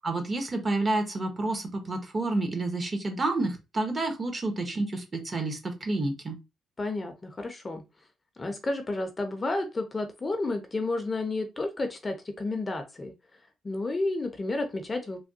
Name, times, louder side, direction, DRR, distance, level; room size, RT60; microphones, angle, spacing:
voice 1, 0.0-6.4, right 2 dB, 30° right, 5 dB, 1.0 m, -29 dB
voice 2, 6.8-7.8 8.4-13.1 13.6-15.3, left 2 dB, 25° left, 6 dB, 0.6 m, -31 dB
3.3 x 2.2 x 2.7 m, 0.25 s
cardioid pair, 90°, 0 cm